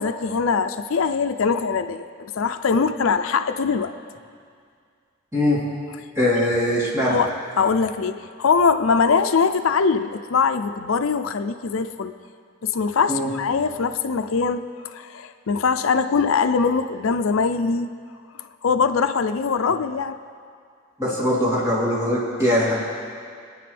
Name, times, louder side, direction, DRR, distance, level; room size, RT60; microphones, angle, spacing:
voice 1, 0.0-3.9 7.1-12.1 12.6-17.9 18.6-20.2, left 5 dB, 80° left, 9 dB, 0.5 m, -22 dB
voice 2, 6.1-7.2 13.1-13.3 21.0-22.7, left 1 dB, 15° right, -9 dB, 3.4 m, -21 dB
24.5 x 9.7 x 3.4 m, 2.2 s
head